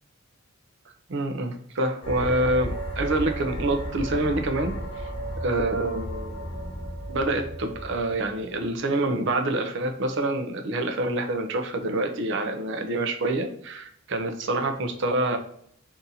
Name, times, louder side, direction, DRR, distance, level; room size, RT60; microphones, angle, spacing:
voice 1, 1.1-4.8 5.4-6.5 7.1-15.4, right 2 dB, 60° right, 5 dB, 0.5 m, -26 dB
sound 1, 2.0-8.6, equal, 40° left, 0.7 m, -34 dB
2.7 x 2.7 x 3.7 m, 0.64 s
head